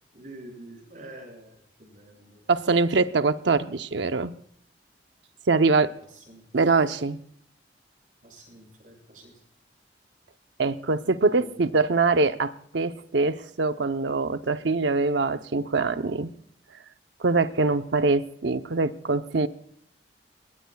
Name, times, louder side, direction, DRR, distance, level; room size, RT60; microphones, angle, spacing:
voice 1, 0.1-2.5 6.1-6.4 8.2-9.3 11.0-11.6, right 1 dB, 45° right, 2 dB, 7.0 m, -47 dB
voice 2, 2.5-4.3 5.5-5.9 6.5-7.2 10.6-16.3 17.2-19.5, right 3 dB, 85° right, 10 dB, 0.8 m, -23 dB
20.5 x 20.0 x 2.3 m, 0.65 s
head